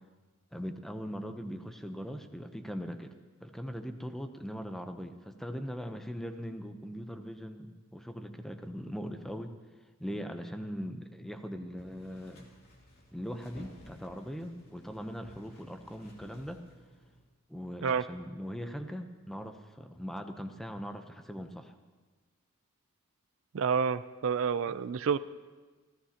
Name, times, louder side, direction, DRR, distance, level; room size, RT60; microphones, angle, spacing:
voice 1, 0.5-3.1 3.4-9.5 10.0-12.5 13.1-16.6 17.5-21.7 24.7-24.8, equal, ahead, 6 dB, 0.7 m, -40 dB
sound 1, 11.8-17.2, equal, 45° left, 2.8 m, -56 dB
voice 2, 23.5-25.2, right 6 dB, 65° right, 14 dB, 0.4 m, -29 dB
27.0 x 14.0 x 2.9 m, 1.3 s
head